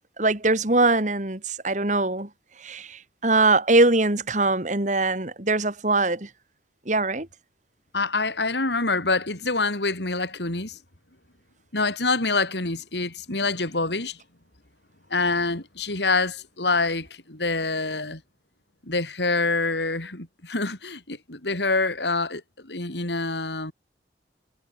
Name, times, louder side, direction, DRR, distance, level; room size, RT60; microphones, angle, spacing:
voice 1, 0.2-2.3 2.6-6.3 6.9-7.3, right 2 dB, 45° right, 2.6 m, -22 dB
voice 2, 7.9-10.8 11.7-14.2 15.1-18.2 18.8-23.7, left 3 dB, 75° left, 4.7 m, -26 dB
head